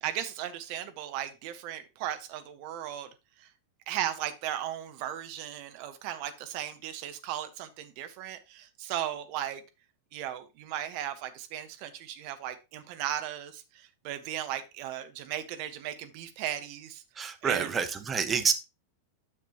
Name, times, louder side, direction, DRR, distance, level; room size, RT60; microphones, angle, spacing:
voice 1, 0.0-3.1 3.4-3.5 3.9-9.6 10.1-17.0 17.4-17.8, right 11 dB, 45° right, 1.1 m, -36 dB
voice 2, 17.1-18.5, right 6 dB, 20° right, 1.1 m, -28 dB
9.9 x 6.6 x 2.9 m
figure-of-eight pair, 90°, 0 cm